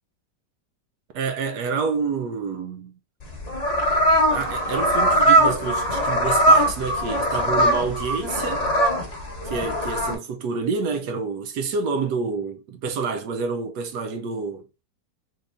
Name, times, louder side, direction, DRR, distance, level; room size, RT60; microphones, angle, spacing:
voice 1, 1.1-2.9 4.3-8.7 9.5-14.7, right 5 dB, 75° right, 1.1 m, -28 dB
sound 1, 3.2-10.1, right 1 dB, 35° left, 0.6 m, -21 dB
4.0 x 3.4 x 2.5 m
omnidirectional pair, 1.9 m